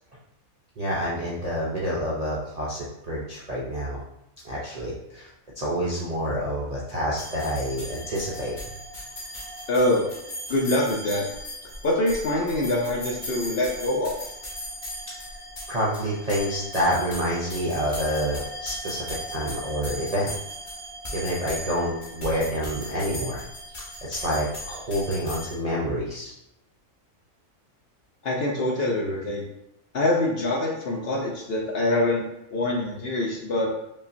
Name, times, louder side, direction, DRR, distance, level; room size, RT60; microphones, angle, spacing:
voice 1, 0.8-4.0 4.4-5.3 5.6-8.6 15.7-20.3 21.1-23.4 24.0-26.3, equal, 50° right, -6 dB, 0.4 m, -28 dB
sound 1, 7.2-25.5, equal, 40° left, 1.0 m, -37 dB
voice 2, 9.7-10.1 10.5-11.2 11.8-14.3 28.2-29.4 29.9-32.2 32.5-33.7, left 1 dB, 60° left, -2 dB, 0.7 m, -24 dB
5.3 x 2.3 x 2.5 m, 0.84 s
omnidirectional pair, 1.5 m